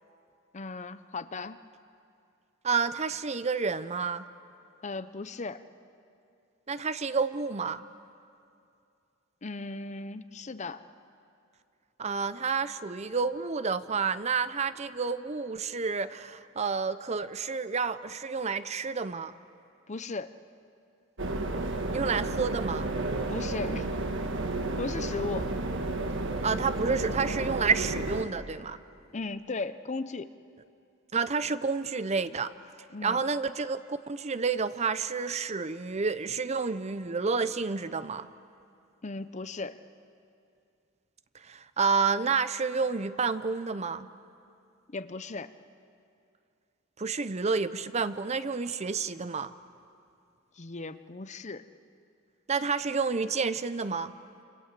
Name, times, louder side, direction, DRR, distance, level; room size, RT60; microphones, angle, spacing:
voice 1, 0.5-1.6 4.8-5.6 9.4-10.9 19.9-20.3 23.3-23.9 24.8-25.5 29.1-30.3 32.9-33.2 39.0-39.8 44.9-45.5 50.6-51.7, left 3 dB, 35° left, 12 dB, 0.7 m, -36 dB
voice 2, 2.6-4.2 6.7-7.8 12.0-19.3 21.9-22.9 26.4-28.8 31.1-32.5 33.0-38.3 41.4-44.1 47.0-49.5 52.5-54.1, right 5 dB, 30° right, 13 dB, 0.6 m, -29 dB
sound 1, 21.2-28.2, right 2 dB, 60° right, 1.6 m, -32 dB
28.0 x 28.0 x 7.6 m, 2.5 s
head